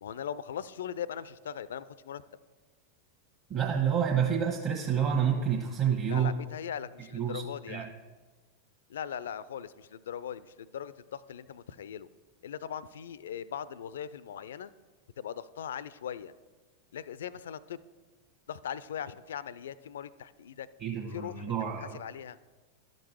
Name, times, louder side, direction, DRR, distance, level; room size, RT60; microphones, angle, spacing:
voice 1, 0.0-2.2 6.1-7.9 8.9-12.1 12.4-14.7 15.2-16.3 16.9-17.8 18.5-20.7 21.1-22.4, left 9 dB, 60° left, 18 dB, 0.3 m, -40 dB
voice 2, 3.5-6.3 7.1-7.9 20.8-22.0, right 8 dB, 35° right, -1 dB, 1.2 m, -29 dB
12.0 x 5.3 x 4.5 m, 1.3 s
figure-of-eight pair, 90°, 0 cm